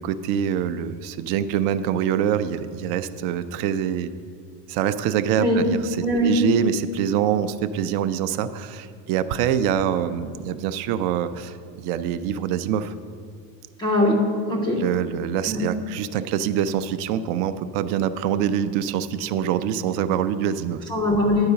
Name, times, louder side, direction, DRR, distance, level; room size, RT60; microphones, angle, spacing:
voice 1, 0.0-4.1 4.7-12.9 14.8-20.9, right 9 dB, 65° right, 12 dB, 0.5 m, -25 dB
voice 2, 6.0-6.3 13.8-14.8 15.5-15.6 20.9-21.5, left 1 dB, 10° left, -2 dB, 0.3 m, -21 dB
9.7 x 4.7 x 6.9 m, 2.2 s
cardioid pair, 165°, 47 cm